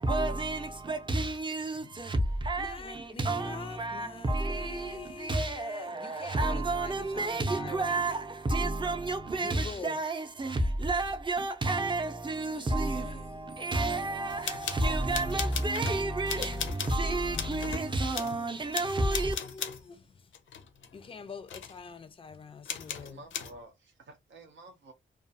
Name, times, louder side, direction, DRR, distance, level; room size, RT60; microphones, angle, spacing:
voice 1, 0.0-19.3, right 2 dB, 25° right, 0.5 m, -31 dB
voice 2, 2.6-8.0 9.4-10.0 12.5-12.7 13.0-13.3 17.4-17.5 17.7-17.8 18.2-20.0 20.9-23.2, left 5 dB, 30° left, 0.4 m, -45 dB
sound 1, 14.3-16.0 16.3-17.0 17.3-17.8 18.1-18.4 18.7-19.8 20.3-21.2 21.5-21.8 22.7-23.5, left 7 dB, 85° left, 0.5 m, -37 dB
voice 3, 22.9-24.9, right 2 dB, 75° right, 0.5 m, -51 dB
2.4 x 2.3 x 2.6 m
wide cardioid pair, 100°, 19 cm